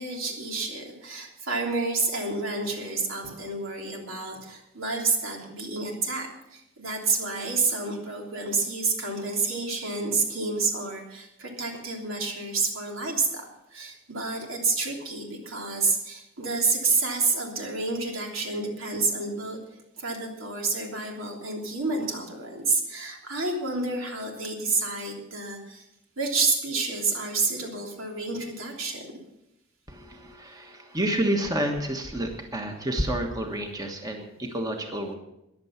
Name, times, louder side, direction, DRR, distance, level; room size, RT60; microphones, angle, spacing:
voice 1, 0.0-19.6 20.0-25.8 26.2-29.0, right 3 dB, 80° right, 1 dB, 3.1 m, -29 dB
voice 2, 29.9-35.1, right 1 dB, 20° right, 3 dB, 1.4 m, -29 dB
15.0 x 10.5 x 5.8 m, 0.86 s
head